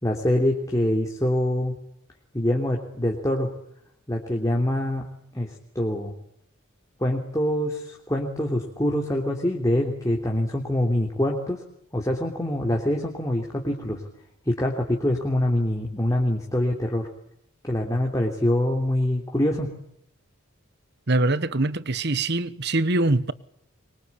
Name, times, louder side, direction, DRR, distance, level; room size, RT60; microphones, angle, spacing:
voice 1, 0.0-1.7 2.3-3.5 4.1-5.0 5.3-6.1 7.0-11.6 11.9-14.0 14.4-17.1 17.6-19.7, left 1 dB, 15° left, 3.3 m, -25 dB
voice 2, 21.1-23.3, right 2 dB, 50° right, 1.2 m, -23 dB
24.0 x 24.0 x 8.6 m
head